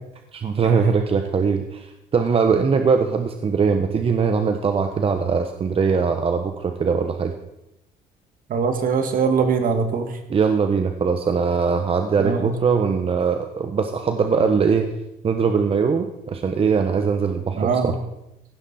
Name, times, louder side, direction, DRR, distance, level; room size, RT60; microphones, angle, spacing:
voice 1, 0.3-7.3 10.3-14.9 15.2-18.0, right 5 dB, 35° right, 6 dB, 1.1 m, -21 dB
voice 2, 8.5-10.1 12.2-12.5 17.6-18.0, right 5 dB, 55° right, 7 dB, 2.1 m, -21 dB
16.0 x 11.5 x 4.3 m, 0.89 s
cardioid pair, 110°, 17 cm